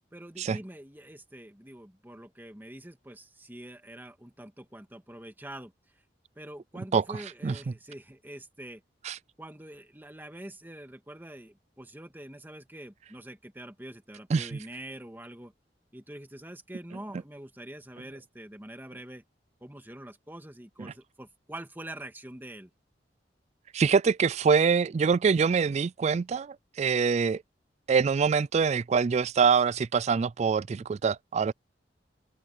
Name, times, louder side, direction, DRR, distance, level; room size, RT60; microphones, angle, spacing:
voice 1, 0.1-5.7 6.4-8.8 9.4-15.5 15.9-19.2 19.6-22.7, right 1 dB, 10° right, 1.9 m, -45 dB
voice 2, 23.7-27.4 27.9-31.5, right 6 dB, 40° right, 0.3 m, -24 dB
head